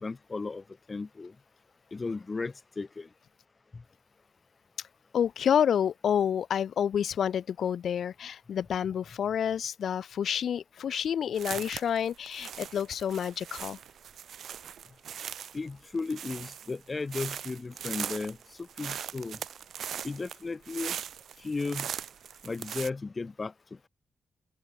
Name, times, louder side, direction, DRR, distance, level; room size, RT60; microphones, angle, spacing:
voice 1, 0.0-1.3 1.9-3.1 3.7-3.8 11.5-11.6 15.5-19.4 20.0-21.0 21.4-22.0 22.4-23.5, left 3 dB, 30° left, 2.9 m, -35 dB
voice 2, 5.1-13.8, left 8 dB, 80° left, 0.9 m, -29 dB
sound 1, 11.3-22.9, right 9 dB, 85° right, 7.1 m, -40 dB
open air
wide cardioid pair, 135°, 0 cm